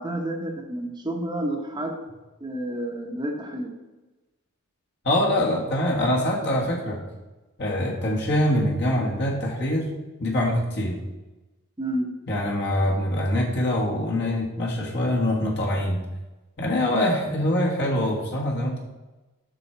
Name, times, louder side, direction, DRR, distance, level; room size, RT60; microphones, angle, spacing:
voice 1, 0.0-1.9 2.4-3.7 11.8-12.1, right 1 dB, 20° right, 0 dB, 0.9 m, -30 dB
voice 2, 5.0-7.0 7.6-9.8 10.2-11.0 12.3-16.0 16.6-18.8, left 1 dB, 50° left, -2 dB, 1.5 m, -24 dB
8.0 x 6.2 x 4.4 m, 1.1 s
head